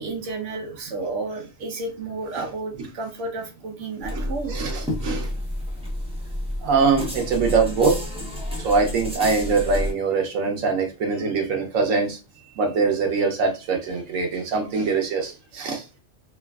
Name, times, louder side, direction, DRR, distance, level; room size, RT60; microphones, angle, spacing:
voice 1, 0.0-4.6 5.1-5.2, right 3 dB, 70° right, 1.0 m, -32 dB
sound 1, 4.0-9.9, left 1 dB, 5° right, 0.6 m, -30 dB
voice 2, 4.1-5.3 6.6-8.0 8.6-12.2 12.6-15.8, right 4 dB, 85° right, 1.2 m, -23 dB
3.0 x 2.4 x 2.3 m
omnidirectional pair, 1.3 m